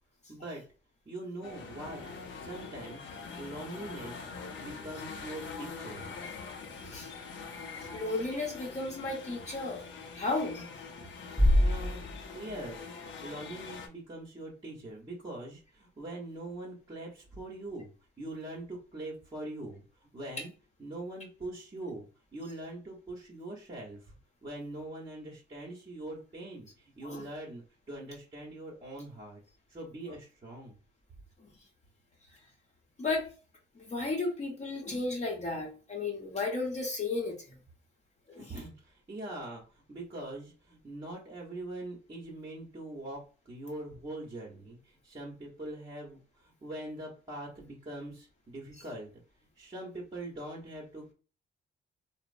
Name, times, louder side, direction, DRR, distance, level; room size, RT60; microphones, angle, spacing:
voice 1, 0.3-0.6 1.1-2.0 2.4-3.1 3.4-4.3 4.6-6.1 11.5-12.0 12.3-17.9 18.2-19.8 20.1-20.5 20.8-22.0 22.3-24.0 24.4-26.7 27.0-29.4 29.7-30.7 38.4-39.6 39.9-44.8 45.0-46.2 46.4-49.1 49.6-51.1, right 1 dB, 25° right, 0.9 m, -42 dB
sound 1, 1.4-13.9, left 4 dB, 65° left, 0.6 m, -44 dB
voice 2, 7.9-9.8 10.1-10.7 27.0-27.2 33.0-33.3 33.8-37.4 38.3-38.5, left 3 dB, 35° left, 0.9 m, -33 dB
Bass drum, 11.4-13.1, left 1 dB, 5° left, 0.6 m, -27 dB
2.8 x 2.0 x 2.5 m
cardioid pair, 90°, 20 cm